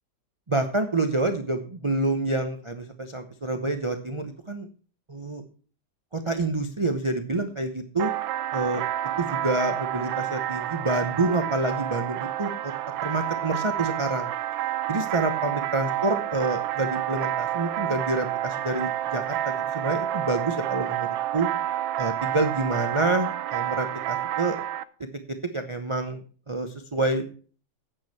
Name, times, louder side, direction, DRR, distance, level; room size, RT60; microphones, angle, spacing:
voice 1, 0.5-4.7 5.1-5.4 6.1-8.1 8.5-8.8 9.2-12.7 13.0-14.3 14.9-21.1 21.3-21.5 22.0-24.6 25.5-26.2 26.5-27.2, right 2 dB, 40° right, 7 dB, 0.4 m, -27 dB
sound 1, 8.0-24.8, right 12 dB, 80° right, 1.4 m, -29 dB
9.4 x 8.3 x 5.7 m, 0.40 s
omnidirectional pair, 2.1 m